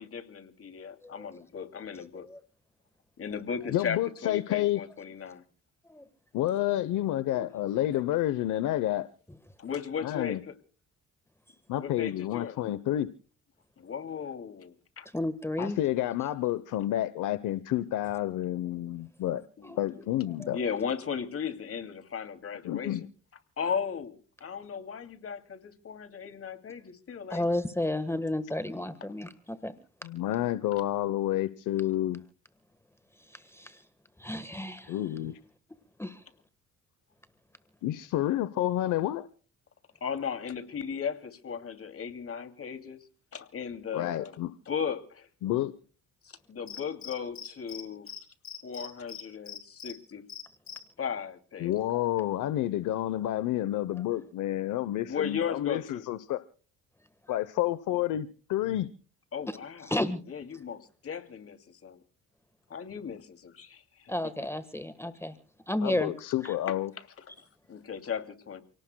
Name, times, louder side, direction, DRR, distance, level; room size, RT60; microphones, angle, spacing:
voice 1, 0.0-2.3 3.2-5.4 9.6-10.5 11.8-12.6 13.8-15.1 19.6-20.0 20.4-23.1 23.6-27.5 30.7-30.8 40.0-43.0 43.3-44.4 44.7-45.3 46.2-48.1 48.6-50.2 51.0-51.7 55.0-56.0 59.3-59.9 60.3-62.0 62.7-64.1 66.7-66.8 67.7-68.6, left 7 dB, 50° left, 2.8 m, -36 dB
voice 2, 3.7-4.8 6.3-9.1 10.0-10.4 11.7-13.1 15.6-19.4 19.8-20.6 22.6-23.1 30.0-32.2 34.9-35.4 37.8-39.3 43.9-44.5 45.4-45.7 51.6-56.4 57.3-58.9 65.8-66.9, left 13 dB, 85° left, 0.9 m, -29 dB
voice 3, 15.1-15.8 19.6-19.8 20.4-20.5 27.3-29.7 33.3-33.8 34.2-35.0 36.0-36.2 59.5-59.6 59.9-60.2 64.1-65.4 65.7-66.1 66.4-66.5, left 1 dB, 10° left, 1.4 m, -32 dB
Cricket, 46.7-47.8 48.1-48.2 48.4-49.9 50.3-50.8, left 7 dB, 65° left, 4.5 m, -41 dB
30.0 x 18.0 x 2.3 m
cardioid pair, 90°, 30 cm